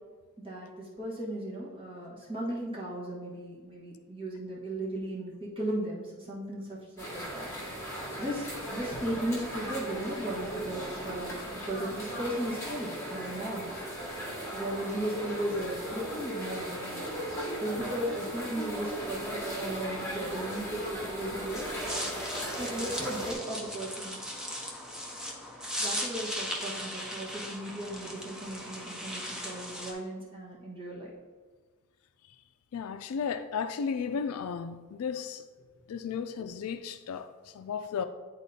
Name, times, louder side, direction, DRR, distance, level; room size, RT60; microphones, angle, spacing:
voice 1, 0.4-11.3 11.6-13.7 14.5-17.0 17.6-21.6 22.6-24.2 25.7-31.1, right 1 dB, 25° right, 1.4 m, -36 dB
sound 1, 7.0-23.3, equal, 15° left, 1.8 m, -37 dB
sound 2, 21.4-29.9, equal, 5° right, 0.7 m, -38 dB
voice 2, 32.7-35.4 35.9-37.3 37.5-38.0, left 6 dB, 90° left, 0.4 m, -34 dB
9.8 x 4.1 x 2.7 m
head